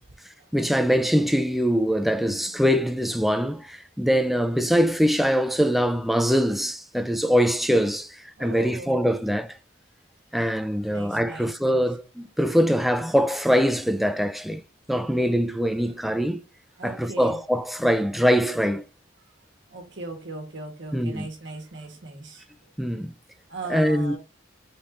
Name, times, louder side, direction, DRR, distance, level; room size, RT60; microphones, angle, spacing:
voice 1, 0.5-9.6 10.3-14.6 14.9-16.4 16.8-18.8 20.9-21.3 22.8-23.1 23.7-24.2, equal, ahead, 0.3 m, -23 dB
voice 2, 8.4-9.0 10.9-11.8 16.8-17.4 19.7-22.4 23.5-24.2, right 2 dB, 65° right, 1.4 m, -38 dB
3.9 x 3.4 x 3.7 m
head